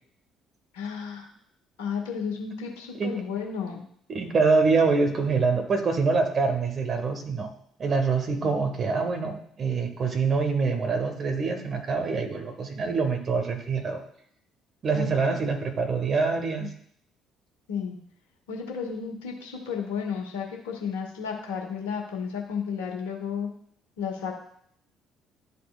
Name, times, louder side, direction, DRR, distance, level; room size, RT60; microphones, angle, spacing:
voice 1, 0.7-1.3 1.8-3.8 8.4-8.6 14.9-15.1 16.6-16.7 17.7-18.0 18.5-23.5 24.0-24.3, left 6 dB, 75° left, 1 dB, 1.2 m, -33 dB
voice 2, 4.1-7.5 7.8-14.0 14.8-16.7, right 4 dB, 45° right, 6 dB, 1.3 m, -25 dB
11.5 x 4.2 x 2.4 m, 0.65 s
figure-of-eight pair, 50°, 0 cm